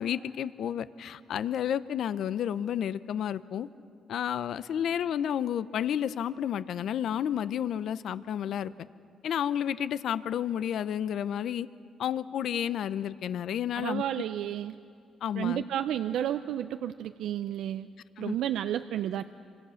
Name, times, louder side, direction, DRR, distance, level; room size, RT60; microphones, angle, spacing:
voice 1, 0.0-3.7 4.1-8.7 9.2-11.7 12.0-14.0 15.2-15.6 18.2-18.4, left 9 dB, 70° left, 15 dB, 0.6 m, -31 dB
voice 2, 13.7-14.7 15.4-17.9 18.2-19.2, right 11 dB, 80° right, 10 dB, 0.5 m, -31 dB
26.5 x 25.5 x 6.4 m, 2.4 s
cardioid pair, 90°, 0 cm